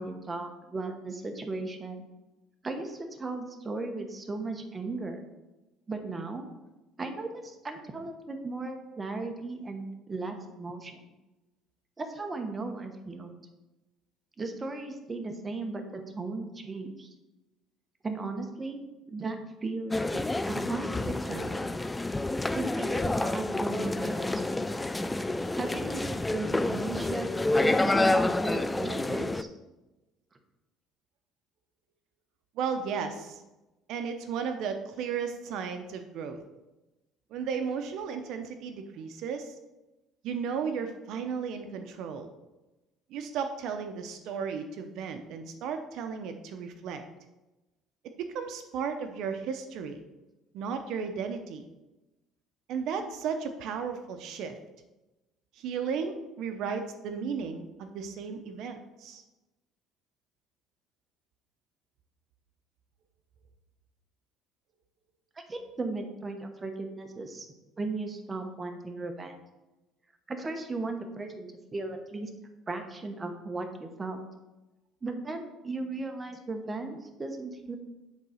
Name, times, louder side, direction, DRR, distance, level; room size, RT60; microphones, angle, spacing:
voice 1, 0.0-2.0 2.6-5.2 5.9-6.4 7.0-11.0 12.0-13.3 14.4-17.1 18.0-18.8 19.1-19.4 19.6-21.6 22.5-24.6 25.6-27.3 27.6-29.5 65.3-67.5 67.8-69.3 70.3-72.3 72.7-74.2 75.0-77.8, right 3 dB, 20° right, 5 dB, 1.0 m, -36 dB
sound 1, 19.9-29.4, left 2 dB, 10° left, 0.3 m, -28 dB
voice 2, 32.6-33.4 33.9-36.4 37.3-39.5 40.2-42.3 43.1-47.0 48.2-50.0 50.5-51.6 52.7-54.6 55.5-59.2, right 6 dB, 65° right, 7 dB, 0.7 m, -34 dB
8.4 x 3.9 x 6.3 m, 1.0 s
cardioid pair, 135°, 0 cm